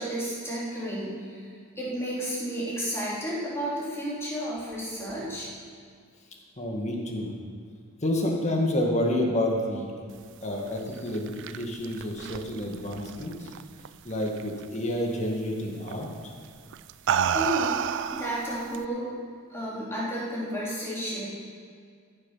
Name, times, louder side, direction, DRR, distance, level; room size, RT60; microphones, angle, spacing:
voice 1, 0.0-1.4 1.7-5.5 17.3-17.8 18.1-19.1 19.5-21.3, right 1 dB, 10° left, -8 dB, 3.3 m, -32 dB
voice 2, 6.6-7.4 8.0-9.9 10.4-13.5 14.0-16.3, left 1 dB, 30° left, 0 dB, 1.7 m, -29 dB
sound 1, 11.0-13.9 14.2-14.6 15.9-16.1 16.7-18.8, right 8 dB, 55° right, 0.4 m, -30 dB
14.5 x 7.3 x 5.7 m, 2.1 s
head